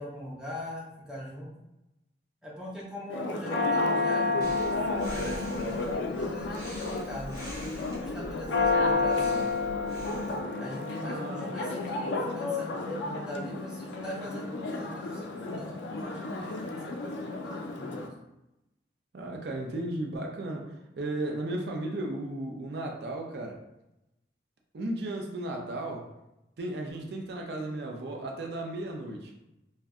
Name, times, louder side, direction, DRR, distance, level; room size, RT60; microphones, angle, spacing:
voice 1, 0.0-1.5 2.4-9.5 10.6-18.0, left 1 dB, 5° right, -6 dB, 0.6 m, -41 dB
Church bell, 3.1-18.1, left 3 dB, 85° left, 0.4 m, -31 dB
Breathing, 4.4-10.4, equal, 20° right, 1.1 m, -44 dB
voice 2, 11.0-11.5 19.1-23.6 24.7-26.1 26.6-29.3, right 1 dB, 65° right, 1 dB, 0.4 m, -35 dB
2.6 x 2.1 x 3.5 m, 0.92 s
head